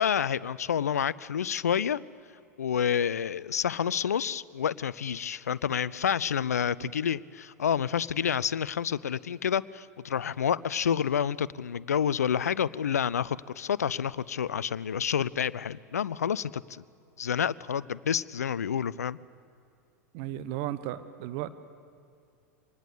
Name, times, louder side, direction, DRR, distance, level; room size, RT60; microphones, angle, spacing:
voice 1, 0.0-2.0 2.6-16.8 17.2-19.2, left 8 dB, 70° left, 20 dB, 0.5 m, -29 dB
voice 2, 20.1-21.5, right 13 dB, 45° right, 13 dB, 0.9 m, -35 dB
25.0 x 19.5 x 8.3 m, 2.4 s
figure-of-eight pair, 90°, 9 cm